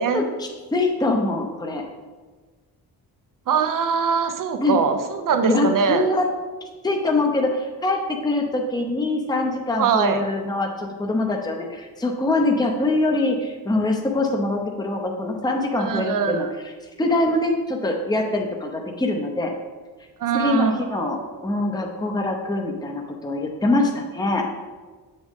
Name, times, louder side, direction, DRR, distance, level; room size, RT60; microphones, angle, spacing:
voice 1, 0.1-1.8 4.6-4.8 5.5-6.3 6.8-16.7 17.0-19.5 20.3-24.4, left 2 dB, 10° left, 2 dB, 0.9 m, -23 dB
voice 2, 3.5-6.0 9.8-10.3 15.8-16.5 20.2-21.3, right 6 dB, 55° right, 7 dB, 0.9 m, -22 dB
7.0 x 6.4 x 3.7 m, 1.4 s
cardioid pair, 80°, 39 cm